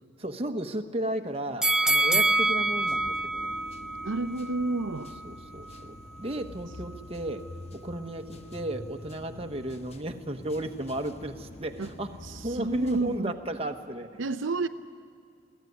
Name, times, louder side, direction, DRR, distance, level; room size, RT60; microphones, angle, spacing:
voice 1, 0.2-3.6 5.0-7.5 7.7-12.2 12.4-14.2, right 1 dB, 30° right, 5 dB, 1.1 m, -34 dB
sound 1, 1.3-1.7 2.0-13.2, left 1 dB, 30° left, 0.9 m, -47 dB
sound 2, 1.6-4.7 5.1-5.2, right 2 dB, 5° right, 0.6 m, -26 dB
voice 2, 4.0-5.1 11.8-11.9 12.2-13.3 14.2-14.7, right 3 dB, 75° right, 8 dB, 0.6 m, -31 dB
22.5 x 16.0 x 9.6 m, 2.4 s
head